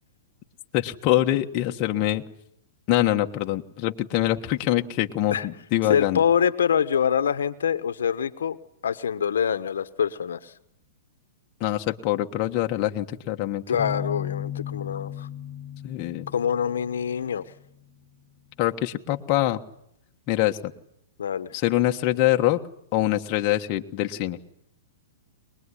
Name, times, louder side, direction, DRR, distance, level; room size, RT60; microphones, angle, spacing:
voice 1, 0.7-2.2 2.9-6.2 11.6-13.6 15.8-16.3 18.6-19.6 20.3-20.6 21.5-22.6 22.9-24.4, left 14 dB, 35° left, 4 dB, 1.4 m, -24 dB
voice 2, 5.9-8.6 8.8-10.5 13.7-15.3 16.3-17.4 21.2-21.5, left 8 dB, 85° left, 12 dB, 1.2 m, -25 dB
sound 1, 13.8-17.5, left 9 dB, 40° right, 5.8 m, -35 dB
23.0 x 21.0 x 9.9 m, 0.75 s
hypercardioid pair, 140°, 0 cm